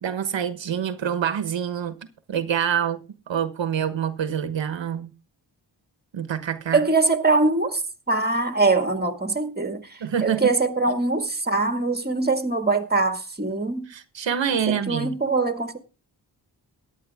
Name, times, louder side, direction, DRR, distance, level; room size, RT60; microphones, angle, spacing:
voice 1, 0.0-1.9 2.3-3.0 3.3-5.1 6.1-6.8 10.0-10.5 13.9-15.2, right 8 dB, 75° right, 1.3 m, -26 dB
voice 2, 6.7-7.8 8.1-13.9 14.7-15.8, right 3 dB, 20° right, 2.0 m, -23 dB
14.0 x 10.5 x 3.5 m
cardioid pair, 55°, 45 cm